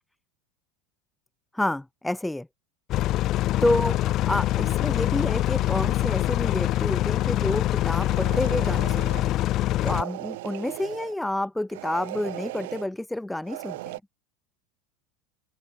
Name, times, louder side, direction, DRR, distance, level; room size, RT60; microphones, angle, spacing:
voice 1, 1.5-2.5 3.6-9.3 9.8-13.8, left 1 dB, 5° left, 3.3 m, -29 dB
sound 1, 2.9-10.0, left 14 dB, 40° left, 1.4 m, -24 dB
sound 2, 7.8-9.3 9.8-11.2 11.7-12.9 13.4-14.0, right 20 dB, 75° right, 4.6 m, -38 dB
open air
supercardioid pair, 140°, 0 cm